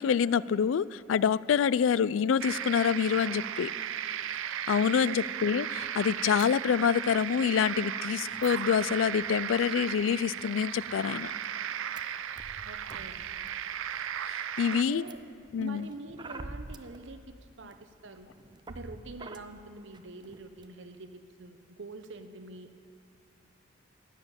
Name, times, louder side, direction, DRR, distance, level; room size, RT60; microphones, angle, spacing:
voice 1, 0.0-3.7 4.7-11.3 14.3-15.0 15.5-15.9, left 7 dB, 80° left, 20 dB, 0.3 m, -26 dB
sound 1, 2.4-14.8, right 9 dB, 90° right, 0.5 m, -36 dB
voice 2, 4.9-5.3 12.6-13.2 14.6-15.2 15.6-18.3 18.7-22.9, right 2 dB, 70° right, 8 dB, 0.9 m, -45 dB
sound 2, 5.8-5.9 6.4-6.5 6.7-7.2 7.7-7.8 8.3-9.5 9.8-10.0 10.4-10.5 10.8-11.4 12.0-12.1 12.4-13.5 14.0-14.4 15.0-17.0 17.7-17.8 18.2-19.4 19.9-20.0 20.2-20.7, right 2 dB, 20° right, 0.5 m, -47 dB
12.0 x 11.0 x 8.9 m, 2.4 s
head